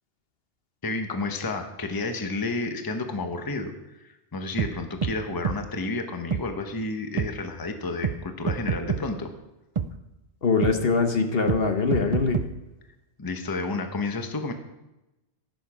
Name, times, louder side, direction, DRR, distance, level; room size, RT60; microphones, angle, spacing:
voice 1, 0.8-9.3 13.2-14.5, left 3 dB, 20° left, 6 dB, 0.9 m, -31 dB
sound 1, 4.6-4.7 5.0-5.1 5.4-5.6 6.3-6.4 7.2-7.3 8.0-8.2 8.5-9.0 9.7-9.9 10.6-10.7 11.5-11.6 11.9-12.5, right 6 dB, 55° right, 0.3 m, -26 dB
voice 2, 10.4-12.4, left 4 dB, 60° left, 6 dB, 1.1 m, -23 dB
16.0 x 6.5 x 4.9 m, 0.97 s
omnidirectional pair, 1.2 m